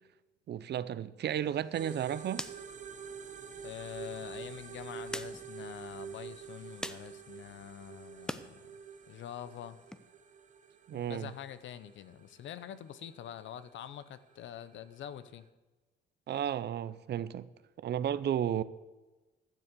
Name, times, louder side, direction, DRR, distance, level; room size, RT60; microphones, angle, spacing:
voice 1, 0.5-2.4 10.9-11.3 16.3-17.5 17.8-18.6, right 10 dB, 60° right, 0.6 m, -33 dB
sound 1, 1.3-8.5 8.8-10.0, left 1 dB, 5° left, 0.6 m, -48 dB
sound 2, 1.7-15.5, right 6 dB, 40° right, 0.9 m, -48 dB
voice 2, 3.6-8.6 9.1-9.8 10.9-15.5, left 10 dB, 70° left, 0.8 m, -45 dB
12.0 x 7.1 x 6.8 m
cardioid pair, 90°, 20 cm